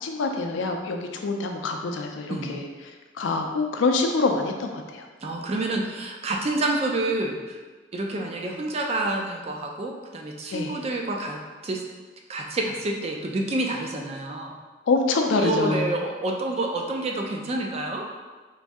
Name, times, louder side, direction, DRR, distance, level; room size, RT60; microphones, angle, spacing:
voice 1, 0.0-2.7 3.2-5.1 10.5-10.8 14.9-15.9, left 3 dB, 85° left, 3 dB, 0.4 m, -25 dB
voice 2, 5.2-7.6 7.9-11.8 12.3-14.5 15.3-18.0, right 2 dB, 35° right, 1 dB, 0.4 m, -28 dB
3.1 x 2.6 x 3.5 m, 1.3 s
head